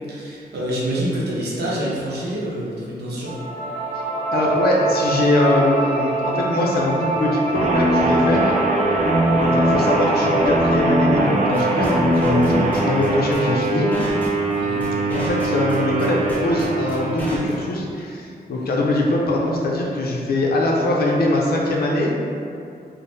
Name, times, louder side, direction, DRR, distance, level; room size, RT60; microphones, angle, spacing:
voice 1, 0.1-3.4 9.2-9.6 14.6-14.9 18.5-18.8, right 1 dB, 80° right, -6 dB, 0.7 m, -27 dB
sound 1, 3.2-14.3, right 2 dB, 25° left, 1.2 m, -25 dB
voice 2, 4.3-8.6 9.4-13.9 15.1-22.1, left 1 dB, 70° left, -2 dB, 0.5 m, -22 dB
sound 2, 7.5-17.8, right 1 dB, 45° right, 0.4 m, -21 dB
sound 3, 11.5-17.5, equal, 10° left, 0.6 m, -34 dB
3.2 x 2.0 x 2.6 m, 2.5 s
wide cardioid pair, 105°, 17 cm